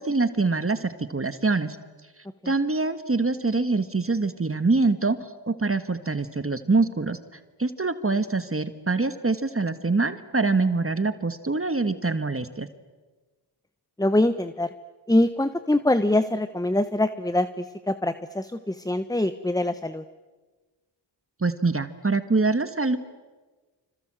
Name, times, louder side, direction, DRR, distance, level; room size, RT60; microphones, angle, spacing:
voice 1, 0.0-1.8 2.4-7.2 7.6-12.7 21.4-23.0, right 3 dB, 30° right, 10 dB, 1.6 m, -24 dB
voice 2, 14.0-14.7 15.1-20.0, left 1 dB, 10° left, 12 dB, 1.0 m, -24 dB
27.0 x 26.5 x 7.7 m, 1.3 s
cardioid pair, 50°, 47 cm